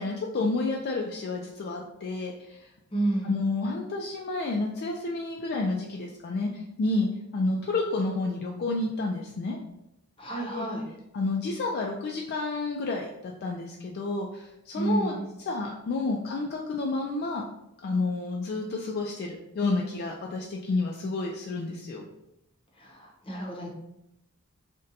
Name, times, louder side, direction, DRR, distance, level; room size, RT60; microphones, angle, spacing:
voice 1, 0.0-2.7 3.2-9.6 10.5-10.7 11.1-17.5 17.8-22.0, left 3 dB, 50° left, 0 dB, 0.3 m, -30 dB
voice 2, 2.9-3.4 10.2-10.8 14.7-15.3 22.8-23.7, right 2 dB, 25° left, -2 dB, 0.7 m, -30 dB
2.6 x 2.2 x 3.9 m, 0.86 s
head